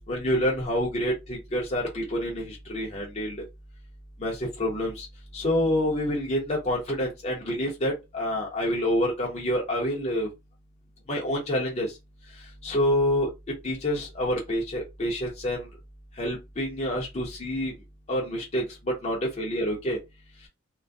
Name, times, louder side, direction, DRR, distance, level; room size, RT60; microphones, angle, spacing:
voice 1, 0.1-3.4 4.2-5.1 5.3-10.3 11.1-11.9 12.6-13.3 13.6-15.7 16.2-17.7 18.1-18.6 19.0-20.0, equal, 30° left, 0.6 m, -27 dB
2.3 x 2.1 x 2.6 m
head